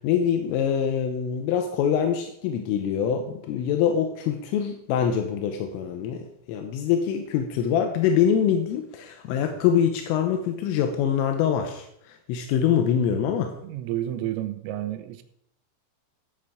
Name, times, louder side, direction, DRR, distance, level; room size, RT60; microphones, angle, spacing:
voice 1, 0.0-13.5, left 8 dB, 85° left, 3.6 m, -24 dB
voice 2, 13.6-15.2, right 13 dB, 90° right, 3.5 m, -30 dB
14.5 x 8.4 x 5.1 m
omnidirectional pair, 5.8 m